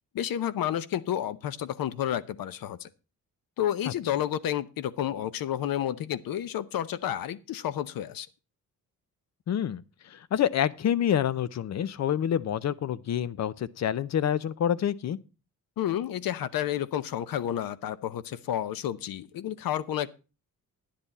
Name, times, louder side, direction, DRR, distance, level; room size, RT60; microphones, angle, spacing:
voice 1, 0.1-2.9 3.6-8.3 15.8-20.1, left 11 dB, 85° left, 0.8 m, -30 dB
voice 2, 9.5-9.8 10.1-15.2, left 9 dB, 50° left, 0.6 m, -27 dB
10.5 x 10.5 x 4.1 m
wide cardioid pair, 160°, 34 cm